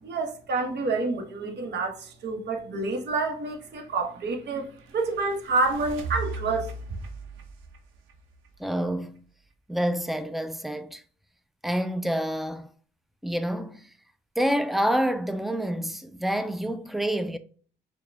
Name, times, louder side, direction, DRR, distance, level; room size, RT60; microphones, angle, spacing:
voice 1, 0.0-6.7, right 3 dB, 60° right, 1.0 m, -28 dB
sound 1, 3.4-9.2, right 3 dB, 90° right, 0.8 m, -40 dB
voice 2, 8.6-9.2 9.7-11.0 11.6-12.7 13.2-13.9 14.4-17.4, equal, ahead, 0.3 m, -28 dB
4.5 x 2.2 x 3.4 m
cardioid pair, 90°, 20 cm